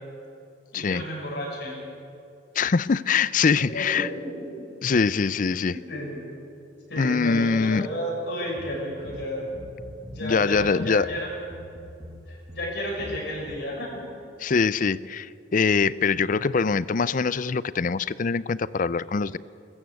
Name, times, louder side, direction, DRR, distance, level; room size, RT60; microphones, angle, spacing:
voice 1, 0.7-1.8 3.7-4.6 5.7-6.2 6.9-9.5 10.1-11.3 12.3-14.0, equal, 60° left, -3 dB, 6.4 m, -32 dB
voice 2, 2.6-4.1 4.8-5.8 7.0-7.9 10.2-11.1 14.4-19.4, left 5 dB, 45° left, 18 dB, 0.4 m, -23 dB
sound 1, 8.6-10.3 10.5-13.6, equal, 20° right, 1.6 m, -43 dB
22.0 x 14.5 x 8.2 m, 2.6 s
head